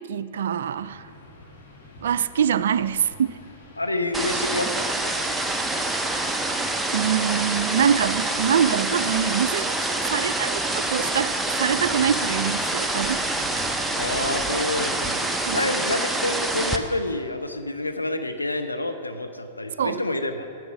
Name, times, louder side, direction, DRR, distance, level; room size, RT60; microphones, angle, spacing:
voice 1, 0.1-1.1 2.0-3.4 6.9-9.7 10.1-13.2 15.4-15.7 19.8-20.0, right 8 dB, 60° right, 16 dB, 0.3 m, -24 dB
sound 1, 0.7-15.3, left 2 dB, 60° left, 2.3 m, -46 dB
voice 2, 3.8-4.9 14.0-15.2 15.5-20.5, left 2 dB, 85° left, 6 dB, 0.7 m, -28 dB
sound 2, 4.1-16.8, right 2 dB, 5° right, 0.7 m, -26 dB
10.5 x 8.3 x 6.1 m, 2.6 s
figure-of-eight pair, 100°, 0 cm